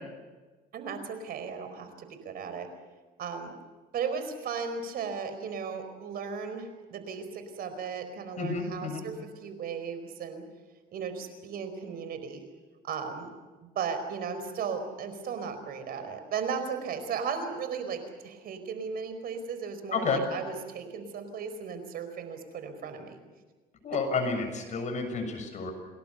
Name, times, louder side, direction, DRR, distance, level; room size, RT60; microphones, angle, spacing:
voice 1, 0.7-2.7 3.2-3.5 3.9-10.4 10.9-12.4 12.8-13.3 13.7-23.2, right 6 dB, 65° right, 9 dB, 4.7 m, -36 dB
voice 2, 8.4-9.0 19.9-20.2 23.8-25.7, left 4 dB, 45° left, 5 dB, 7.1 m, -30 dB
28.5 x 20.0 x 7.0 m, 1.3 s
cardioid pair, 110°, 17 cm